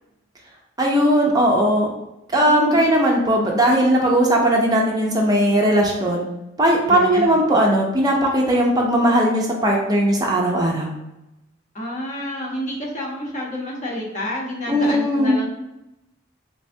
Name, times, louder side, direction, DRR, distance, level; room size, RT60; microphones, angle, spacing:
voice 1, 0.8-1.9 2.3-6.2 6.6-11.0 14.7-15.4, right 1 dB, 20° right, -1 dB, 0.5 m, -18 dB
voice 2, 2.4-2.9 6.8-7.4 11.7-15.5, left 1 dB, 40° left, -2 dB, 0.8 m, -29 dB
3.3 x 3.3 x 2.6 m, 0.91 s
head